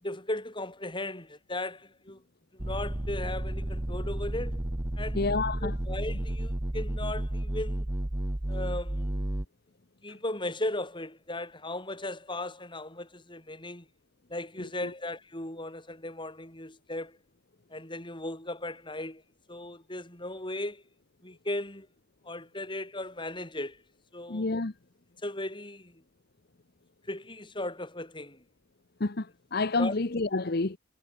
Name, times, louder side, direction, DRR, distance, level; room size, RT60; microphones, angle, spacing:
voice 1, 0.0-2.2 2.5-4.6 5.0-5.2 5.6-7.9 8.5-9.2 10.0-13.9 14.3-17.2 17.7-19.2 19.5-20.8 21.2-21.9 22.2-23.8 24.1-24.5 25.2-26.0 27.1-28.4 29.8-29.9, left 1 dB, 25° left, 5.5 m, -37 dB
sound 1, 2.6-9.5, right 1 dB, 20° right, 0.9 m, -32 dB
voice 2, 5.1-5.7 24.3-24.7 29.0-30.8, left 3 dB, 55° left, 1.0 m, -29 dB
head